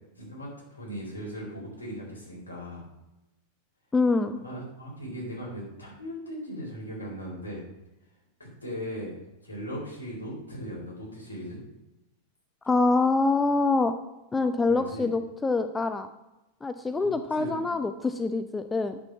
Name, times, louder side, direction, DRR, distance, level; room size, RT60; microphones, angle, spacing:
voice 1, 0.2-2.8 4.4-7.6 8.4-9.1 9.4-11.6 14.7-15.0 17.0-17.6, equal, 75° left, -3 dB, 3.9 m, -38 dB
voice 2, 3.9-4.4 12.6-13.9 14.3-16.1 16.6-19.0, left 3 dB, 10° left, 9 dB, 0.5 m, -25 dB
8.9 x 6.7 x 5.8 m, 0.96 s
figure-of-eight pair, 90°, 0 cm